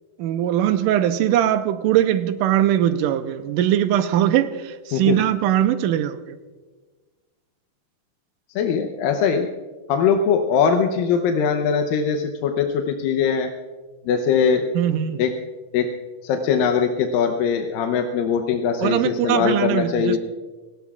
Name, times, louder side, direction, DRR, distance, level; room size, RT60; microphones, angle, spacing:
voice 1, 0.2-6.4 14.7-15.2 18.8-20.2, right 11 dB, 80° right, 9 dB, 2.3 m, -21 dB
voice 2, 8.6-9.5 9.9-13.5 14.1-14.6 15.2-15.3 15.7-15.9 16.2-20.2, left 6 dB, 90° left, 4 dB, 2.6 m, -21 dB
28.5 x 18.0 x 2.4 m, 1.3 s
omnidirectional pair, 3.9 m